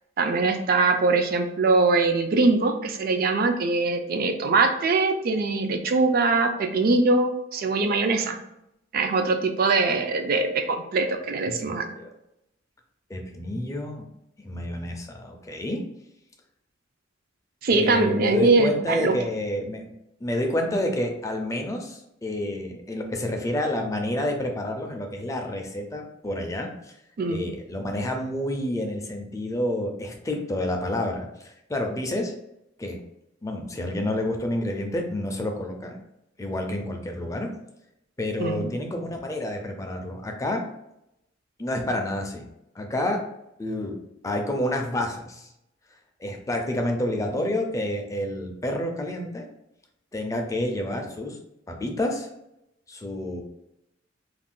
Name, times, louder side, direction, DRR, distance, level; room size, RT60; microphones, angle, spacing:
voice 1, 0.2-8.4 8.9-11.9 17.6-19.2 27.2-27.5 38.4-38.7, right 3 dB, 50° right, 6 dB, 0.4 m, -22 dB
voice 2, 11.5-12.1 13.1-14.0 14.4-15.8 17.7-19.9 20.2-26.9 27.3-32.3 32.8-33.0 33.4-36.0 36.4-37.5 38.2-40.6 41.6-42.5 42.8-43.2 43.6-44.0 44.2-45.5 46.2-49.5 50.1-51.4 51.7-52.3 52.9-53.4, left 1 dB, 15° left, 3 dB, 0.4 m, -29 dB
2.5 x 2.1 x 3.6 m, 0.82 s
head